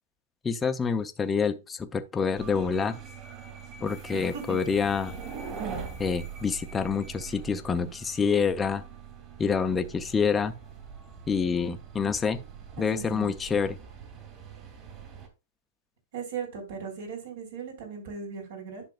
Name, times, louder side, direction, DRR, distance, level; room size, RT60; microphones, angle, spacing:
voice 1, 0.4-3.0 3.8-5.1 6.0-8.8 9.4-10.5 11.3-12.4 12.8-13.8, left 5 dB, 15° left, 0.6 m, -27 dB
sound 1, 2.3-15.3, right 6 dB, 35° right, 2.8 m, -42 dB
voice 2, 4.1-4.6 12.8-13.3 16.1-18.8, right 6 dB, 70° right, 3.8 m, -38 dB
10.5 x 6.3 x 2.4 m
hypercardioid pair, 130°, 0 cm